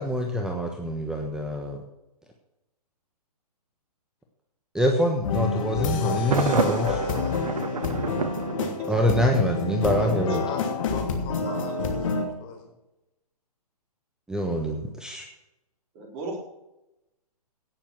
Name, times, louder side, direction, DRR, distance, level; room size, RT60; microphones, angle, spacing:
voice 1, 0.0-1.8 4.7-7.0 8.9-10.4 14.3-15.3, equal, 5° right, 3 dB, 1.2 m, -25 dB
sound 1, 5.2-12.2, left 4 dB, 55° left, 2.7 m, -28 dB
voice 2, 5.7-8.0 9.2-9.4 9.9-12.6, left 5 dB, 35° left, 2 dB, 4.6 m, -39 dB
Thunder, 6.3-9.3, right 6 dB, 75° right, 0.9 m, -29 dB
voice 3, 8.3-9.1 10.3-10.5 11.4-11.7 15.9-16.4, right 3 dB, 30° right, 0 dB, 4.2 m, -40 dB
17.0 x 7.4 x 6.1 m, 0.94 s
hypercardioid pair, 130°, 20 cm